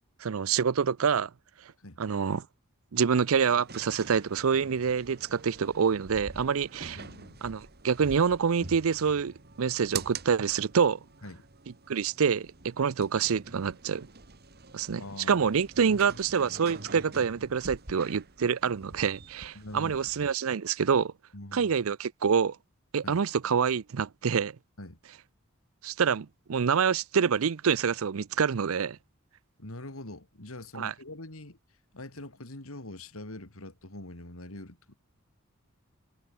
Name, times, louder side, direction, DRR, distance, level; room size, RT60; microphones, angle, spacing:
voice 1, 0.2-1.3 2.0-2.4 2.9-7.0 7.4-11.0 11.9-14.1 14.7-15.0 15.3-21.1 21.5-22.6 22.9-24.5 25.8-29.0 30.7-30.9, right 6 dB, 75° right, 0.5 m, -26 dB
sound 1, 3.1-20.3, right 4 dB, 50° right, 2.2 m, -46 dB
voice 2, 6.9-7.4 11.2-11.4 15.0-15.4 15.9-16.0 19.5-20.0 21.3-21.7 23.0-23.2 24.8-25.0 29.6-31.6 31.9-35.0, left 1 dB, 75° left, 3.4 m, -43 dB
head